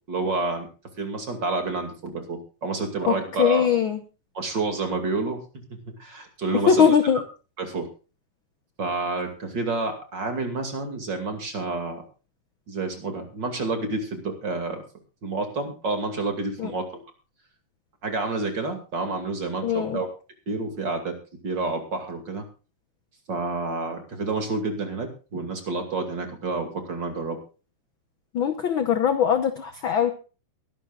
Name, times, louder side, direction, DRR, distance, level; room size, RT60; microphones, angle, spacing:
voice 1, 0.1-0.7 1.0-3.7 4.3-5.4 6.0-7.0 7.6-7.9 8.8-12.0 12.7-14.8 15.2-17.0 18.0-20.1 20.5-21.2 21.4-22.5 23.3-27.4, right 3 dB, 35° right, 5 dB, 2.7 m, -29 dB
voice 2, 3.1-4.0 6.7-7.2 16.6-16.7 19.6-20.0 28.3-30.1, left 7 dB, 75° left, 8 dB, 1.1 m, -21 dB
22.0 x 12.0 x 2.4 m, 0.34 s
omnidirectional pair, 3.8 m